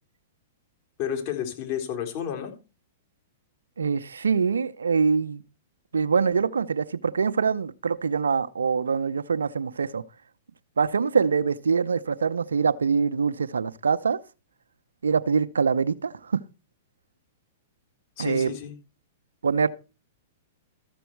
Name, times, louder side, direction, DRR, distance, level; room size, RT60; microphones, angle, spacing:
voice 1, 1.0-2.5 18.2-18.7, left 9 dB, 50° left, 3.7 m, -31 dB
voice 2, 3.8-5.4 5.9-10.0 10.8-14.2 15.0-16.4 18.2-18.5 19.4-19.7, right 5 dB, 85° right, 0.7 m, -24 dB
13.5 x 6.9 x 4.5 m
hypercardioid pair, 115°, 0 cm